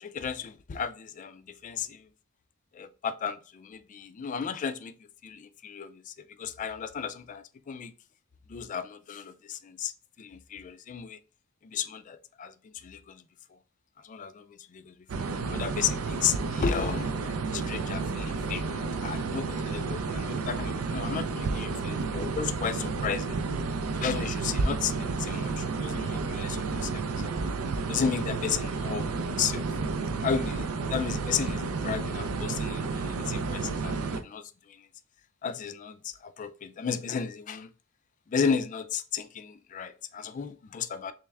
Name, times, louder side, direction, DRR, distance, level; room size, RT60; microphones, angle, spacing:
voice 1, 0.0-2.1 2.7-4.9 5.2-7.9 8.5-9.9 10.2-11.2 11.6-12.5 12.8-13.2 14.0-23.4 24.0-26.6 26.8-27.5 27.9-29.6 30.2-34.4 34.7-34.8 35.4-37.7 38.3-41.1, left 7 dB, 35° left, 0.3 m, -34 dB
sound 1, 15.1-34.2, right 4 dB, 85° right, 0.5 m, -31 dB
3.4 x 3.4 x 3.2 m
head